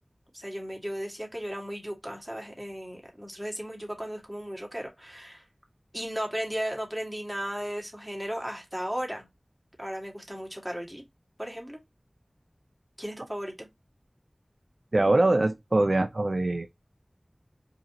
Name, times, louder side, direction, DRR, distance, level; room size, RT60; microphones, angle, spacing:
voice 1, 0.3-5.4 5.9-9.3 9.8-11.0 11.4-11.8 13.0-13.7, equal, 15° right, 2.0 m, -35 dB
voice 2, 14.9-16.7, right 2 dB, 70° right, 0.5 m, -23 dB
4.8 x 2.9 x 2.9 m
wide cardioid pair, 40°, 0 cm